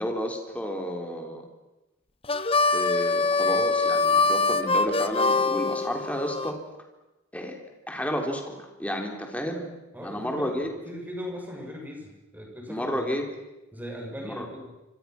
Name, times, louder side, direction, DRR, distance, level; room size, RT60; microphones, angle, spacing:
voice 1, 0.0-1.5 2.7-6.6 7.3-7.6 7.9-9.7 10.0-10.7 12.7-13.3 14.2-14.5, equal, 5° left, 2 dB, 3.8 m, -31 dB
Harmonica, 2.2-6.5, left 3 dB, 30° left, 1.1 m, -24 dB
voice 2, 9.9-13.2 13.7-14.7, equal, 10° right, 0 dB, 6.7 m, -39 dB
28.5 x 26.5 x 6.1 m, 1.0 s
head